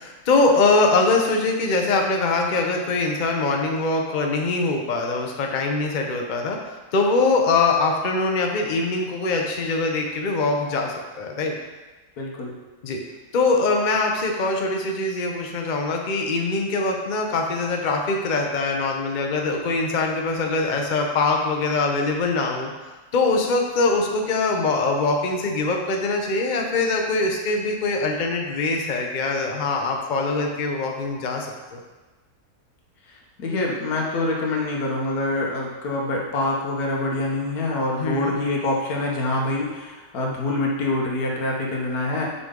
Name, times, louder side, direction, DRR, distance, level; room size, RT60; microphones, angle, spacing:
voice 1, 0.0-11.5 12.8-13.0 13.3-22.7 23.1-31.8 38.0-38.3, left 3 dB, 50° left, 1 dB, 0.5 m, -23 dB
voice 2, 12.2-12.5 33.4-42.3, left 2 dB, 65° left, -2 dB, 1.6 m, -25 dB
6.1 x 5.4 x 3.7 m, 1.2 s
omnidirectional pair, 1.7 m